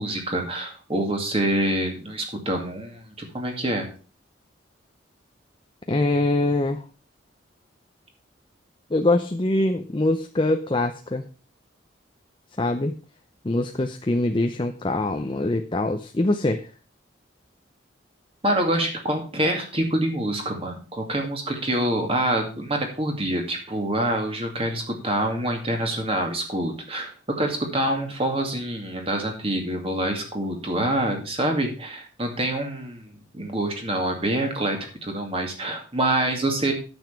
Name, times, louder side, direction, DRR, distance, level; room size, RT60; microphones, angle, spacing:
voice 1, 0.0-3.9 18.4-36.7, right 1 dB, 30° right, 3 dB, 2.3 m, -26 dB
voice 2, 5.9-6.8 8.9-11.2 12.6-12.9 13.4-16.7, left 2 dB, 25° left, 6 dB, 0.6 m, -23 dB
9.2 x 7.2 x 5.7 m, 0.37 s
head